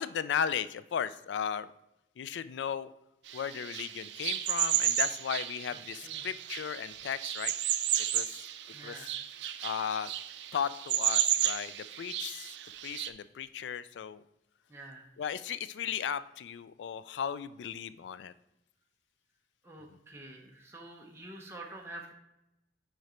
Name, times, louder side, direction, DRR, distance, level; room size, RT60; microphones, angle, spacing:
voice 1, 0.0-1.7 2.2-2.9 3.3-7.5 8.1-8.4 8.8-9.1 9.6-10.1 10.5-12.5 12.8-14.2 15.2-18.3, left 8 dB, 90° left, 15 dB, 0.3 m, -36 dB
sound 1, 3.3-13.1, right 12 dB, 80° right, 0.4 m, -33 dB
voice 2, 8.7-9.1 14.7-15.0 19.6-22.1, right 2 dB, 15° right, -1 dB, 0.8 m, -47 dB
6.4 x 5.0 x 4.2 m, 0.87 s
head